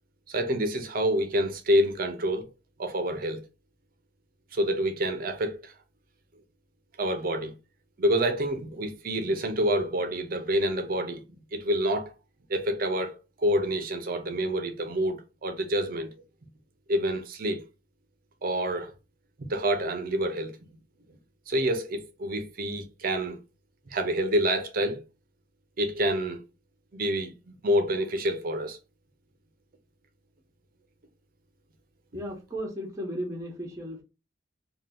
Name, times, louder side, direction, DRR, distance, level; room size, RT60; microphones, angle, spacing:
voice 1, 0.3-2.5 2.8-3.4 4.5-5.7 7.0-7.5 8.0-11.2 11.5-12.1 12.5-16.1 16.9-17.6 18.4-18.9 19.4-20.6 21.5-23.4 23.9-25.0 25.8-26.4 26.9-28.8, equal, 50° right, 0.5 m, -27 dB
voice 2, 32.1-34.0, equal, 15° right, 0.7 m, -35 dB
2.7 x 2.2 x 3.4 m
head